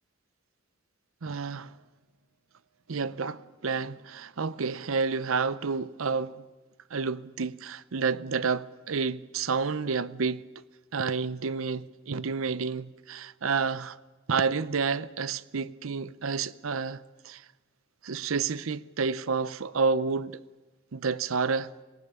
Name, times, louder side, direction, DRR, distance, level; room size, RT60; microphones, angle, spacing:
voice 1, 1.2-1.7 2.9-6.3 6.9-10.4 10.9-14.0 14.3-17.4 18.0-20.4 20.9-21.7, right 5 dB, 75° right, 0.7 m, -30 dB
25.5 x 19.0 x 8.7 m
head